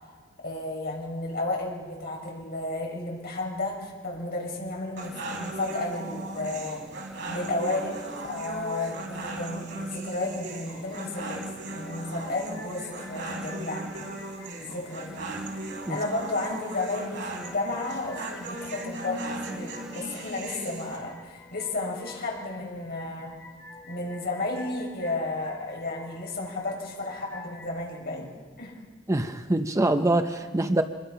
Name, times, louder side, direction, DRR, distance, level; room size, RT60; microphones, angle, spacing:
voice 1, 0.4-6.8 7.3-14.1 14.6-15.2 15.9-23.4 23.9-28.7, left 2 dB, 50° left, -1 dB, 6.1 m, -33 dB
sound 1, 5.0-21.0, right 2 dB, 65° right, 4.0 m, -37 dB
sound 2, 10.0-27.7, left 3 dB, 20° left, 4.8 m, -50 dB
voice 2, 29.1-30.8, right 1 dB, 15° right, 7 dB, 0.6 m, -24 dB
26.5 x 21.5 x 5.7 m, 1.5 s
head